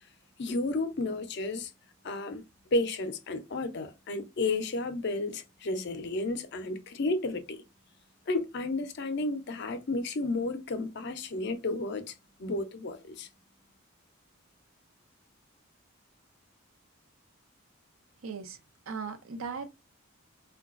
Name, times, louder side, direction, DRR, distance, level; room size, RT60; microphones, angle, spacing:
voice 1, 0.4-1.7 2.0-2.4 2.7-7.6 8.3-12.1 12.4-13.3, left 2 dB, 55° left, 0.5 m, -32 dB
voice 2, 18.2-18.6 18.9-19.7, right 5 dB, 75° right, 0.6 m, -37 dB
3.8 x 2.2 x 2.4 m
head